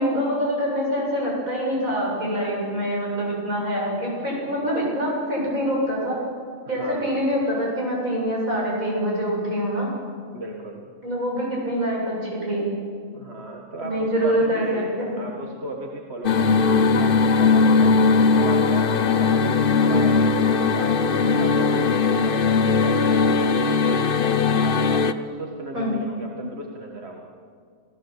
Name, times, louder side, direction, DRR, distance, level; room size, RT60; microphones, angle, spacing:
voice 1, 0.0-6.2 6.7-9.9 11.0-12.7 13.8-15.2 25.7-25.9, equal, 75° right, -4 dB, 8.5 m, -25 dB
voice 2, 6.8-7.2 10.3-10.9 13.1-20.4 20.7-24.3 24.6-27.3, right 2 dB, 50° right, 1 dB, 2.0 m, -37 dB
sound 1, 16.2-25.1, left 4 dB, 45° left, 0.9 m, -19 dB
27.5 x 17.0 x 8.3 m, 2.1 s
omnidirectional pair, 1.5 m